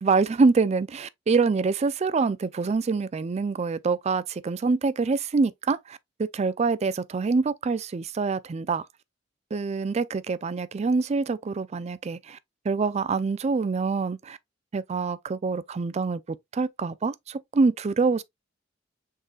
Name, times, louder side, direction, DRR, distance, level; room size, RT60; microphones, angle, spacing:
voice 1, 0.0-8.9 9.5-12.4 12.7-14.4 14.7-18.2, right 4 dB, 35° right, 0.4 m, -25 dB
6.4 x 3.7 x 2.3 m
head